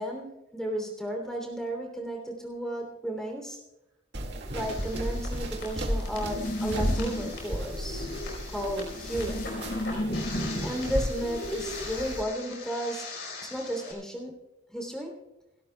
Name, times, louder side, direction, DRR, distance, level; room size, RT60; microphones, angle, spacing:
voice 1, 0.0-3.6 4.5-8.1 8.5-9.4 10.6-13.0 13.4-14.4 14.7-15.1, right 1 dB, 5° left, 0 dB, 3.2 m, -34 dB
sound 1, 4.1-12.2, right 1 dB, 55° right, 2.1 m, -36 dB
sound 2, 4.5-13.9, left 1 dB, 60° left, 4.8 m, -36 dB
sound 3, 6.1-11.8, left 1 dB, 40° left, 1.0 m, -36 dB
29.5 x 12.5 x 2.3 m, 0.93 s
head